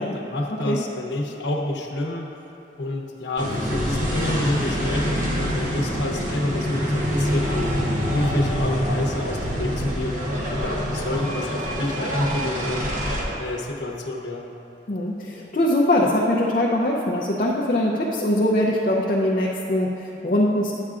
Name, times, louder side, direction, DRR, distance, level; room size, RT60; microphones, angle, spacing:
voice 1, 0.0-2.3 2.8-7.7 8.1-10.2 10.5-12.8 13.4-14.5, left 1 dB, 85° left, 1 dB, 0.9 m, -28 dB
sound 1, 3.4-13.2, equal, 45° right, 1.1 m, -26 dB
voice 2, 14.9-20.7, left 1 dB, 50° left, -3 dB, 0.6 m, -22 dB
11.0 x 8.7 x 2.5 m, 3.0 s
head